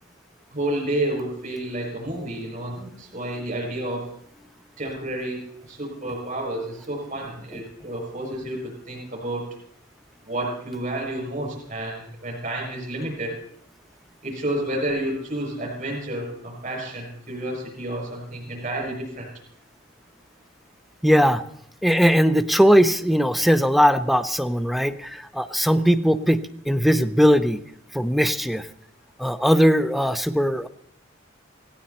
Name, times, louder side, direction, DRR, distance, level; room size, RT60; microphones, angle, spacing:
voice 1, 0.5-4.1 4.8-9.5 10.2-13.4 14.2-19.3, right 1 dB, 45° right, -1 dB, 6.4 m, -30 dB
voice 2, 21.0-21.4 21.8-26.4 26.7-27.6 27.9-28.7 29.2-30.7, equal, ahead, 12 dB, 0.7 m, -19 dB
17.5 x 17.0 x 4.3 m, 0.66 s
head